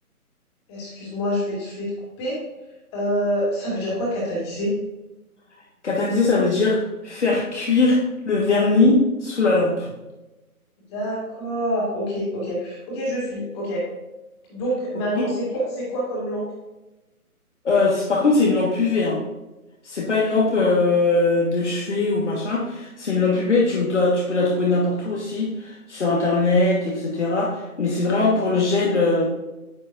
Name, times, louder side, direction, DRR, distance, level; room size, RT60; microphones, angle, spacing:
voice 1, 0.7-1.9 2.2-2.4 2.9-4.7 10.9-13.9 14.5-16.4, equal, 20° left, -5 dB, 2.5 m, -26 dB
voice 2, 5.8-8.0 8.3-9.9 15.2-15.3 17.6-19.2 19.8-29.3, left 3 dB, 50° left, -3 dB, 1.6 m, -20 dB
9.4 x 6.5 x 2.6 m, 1.0 s
figure-of-eight pair, 150°, 45 cm